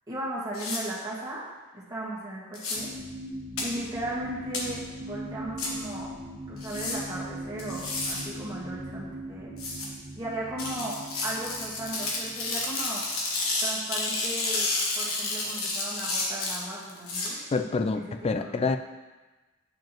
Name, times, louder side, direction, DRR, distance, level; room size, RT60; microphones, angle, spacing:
voice 1, 0.1-1.4 1.7-2.9 3.6-6.1 6.5-9.5 10.2-11.0 11.2-13.0 13.6-17.4 17.9-18.7, right 1 dB, 20° right, -7 dB, 1.7 m, -36 dB
sound 1, 0.5-0.8 2.5-2.8 3.6-3.7 4.5-4.6 5.6-5.7 6.6-7.0 7.6-8.2 9.6-9.9 10.6-17.3, left 2 dB, 70° left, 1.3 m, -30 dB
sound 2, 2.7-12.8 13.4-13.5, right 1 dB, 45° right, 1.3 m, -40 dB
voice 2, 17.5-18.8, left 4 dB, 25° left, 8 dB, 0.3 m, -27 dB
9.2 x 5.0 x 3.0 m, 1.2 s
head